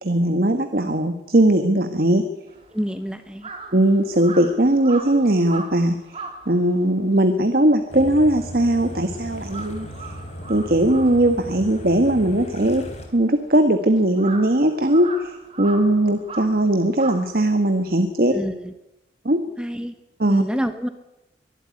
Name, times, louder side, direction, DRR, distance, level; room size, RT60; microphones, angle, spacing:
voice 1, 0.0-2.2 3.7-6.0 6.5-9.9 10.5-12.8 13.1-18.3 19.2-19.4 20.2-20.4, right 1 dB, 55° right, 8 dB, 1.4 m, -19 dB
Crow, 2.5-9.0 9.3-17.9, right 4 dB, 30° right, 2.9 m, -39 dB
voice 2, 2.7-3.5 18.3-18.7 19.6-19.9 20.3-20.9, equal, 5° right, 9 dB, 1.0 m, -27 dB
sound 1, 7.9-13.1, equal, 35° left, 4.0 m, -36 dB
23.0 x 12.5 x 9.8 m, 0.96 s
head